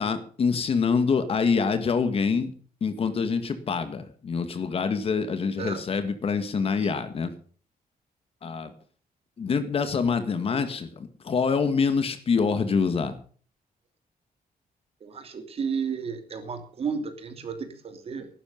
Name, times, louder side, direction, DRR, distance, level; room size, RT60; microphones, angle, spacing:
voice 1, 0.0-2.5 2.8-7.3 8.4-8.7 9.4-13.2, left 5 dB, 40° left, 10 dB, 1.9 m, -25 dB
voice 2, 15.0-18.3, right 6 dB, 40° right, 7 dB, 2.9 m, -33 dB
15.5 x 12.0 x 5.4 m, 0.43 s
wide cardioid pair, 175°, 15 cm